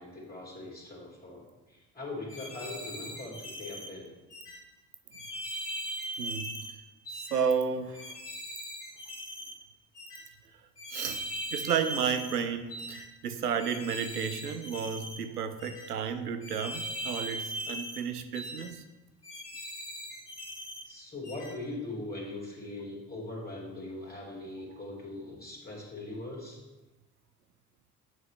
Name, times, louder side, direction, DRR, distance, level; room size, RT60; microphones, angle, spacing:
voice 1, 0.0-4.1 20.8-26.6, left 2 dB, 20° left, -5 dB, 2.6 m, -41 dB
sound 1, 2.3-3.9 4.3-4.6 5.1-6.7 7.1-7.4 7.9-9.5 9.9-10.2 10.8-12.4 12.7-13.0 13.6-15.2 15.6-15.9 16.4-18.0 18.3-18.7 19.2-20.8 21.2-21.5, equal, 90° left, 1.0 m, -40 dB
voice 2, 6.2-6.6 7.1-8.1 10.9-11.2 11.5-18.8, right 7 dB, 85° right, 9 dB, 0.6 m, -32 dB
8.8 x 6.5 x 3.2 m, 1.1 s
figure-of-eight pair, 50°, 46 cm